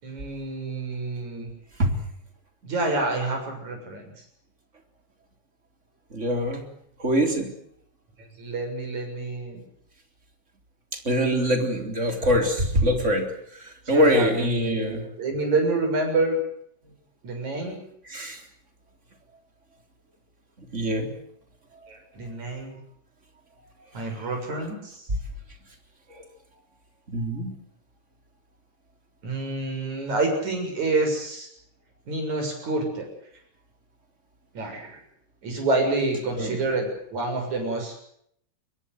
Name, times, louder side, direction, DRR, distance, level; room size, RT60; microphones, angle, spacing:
voice 1, 0.0-1.5 2.6-4.1 8.4-9.6 12.1-12.3 13.9-16.4 17.2-17.8 21.9-22.8 23.9-25.1 29.2-31.5 32.1-33.1 34.5-35.0 35.4-38.0, right 2 dB, 60° right, 3 dB, 8.2 m, -28 dB
voice 2, 6.1-6.6 7.0-7.5 11.1-13.3 13.6-15.0 18.1-18.4 20.7-21.1 27.1-27.6 36.4-36.6, equal, 20° right, 5 dB, 3.8 m, -23 dB
24.0 x 22.0 x 7.9 m, 0.69 s
omnidirectional pair, 3.7 m